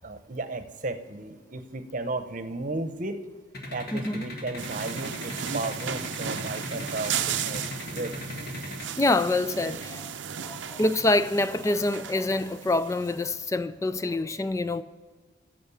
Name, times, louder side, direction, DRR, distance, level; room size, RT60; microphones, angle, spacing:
voice 1, 0.0-3.2 3.7-8.1, right 2 dB, 45° right, 0.9 m, -34 dB
sound 1, 3.5-8.8, left 2 dB, 55° left, 1.9 m, -38 dB
voice 2, 3.9-4.2 9.0-10.1 10.4-14.8, left 2 dB, 15° left, 0.3 m, -26 dB
sound 2, 4.6-13.4, right 8 dB, 90° right, 0.6 m, -35 dB
10.5 x 7.5 x 7.0 m
head